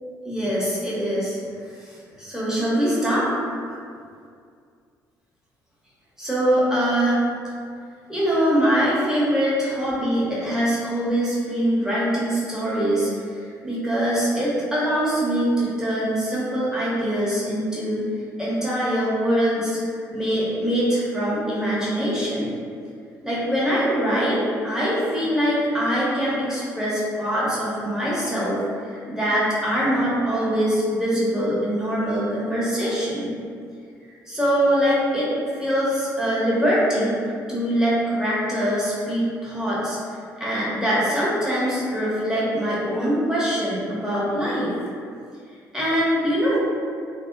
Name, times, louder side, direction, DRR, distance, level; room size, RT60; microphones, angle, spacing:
voice 1, 0.2-1.4 2.2-3.2 6.2-7.2 8.1-13.1 13.6-18.1 18.4-19.8 20.1-22.5 23.2-28.6 28.9-33.3 34.3-37.2 37.5-40.0 40.4-44.7 45.7-46.6, equal, 5° right, -8 dB, 0.9 m, -23 dB
2.6 x 2.1 x 2.4 m, 2.3 s
figure-of-eight pair, 45°, 10 cm